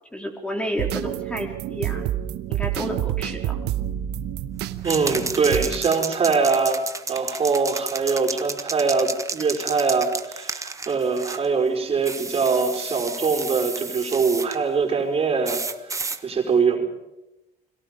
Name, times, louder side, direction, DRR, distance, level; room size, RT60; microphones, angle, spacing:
voice 1, 0.1-2.0 2.5-3.6, equal, 5° left, 1 dB, 3.9 m, -31 dB
sound 1, 0.8-5.9, right 12 dB, 80° right, 1.1 m, -28 dB
sound 2, 4.8-11.5 12.0-14.6 15.4-16.2, right 3 dB, 20° right, 1.4 m, -32 dB
voice 2, 4.8-6.8 7.1-16.8, right 4 dB, 35° right, 1 dB, 4.9 m, -23 dB
30.0 x 22.5 x 5.3 m, 0.97 s
cardioid pair, 110°, 17 cm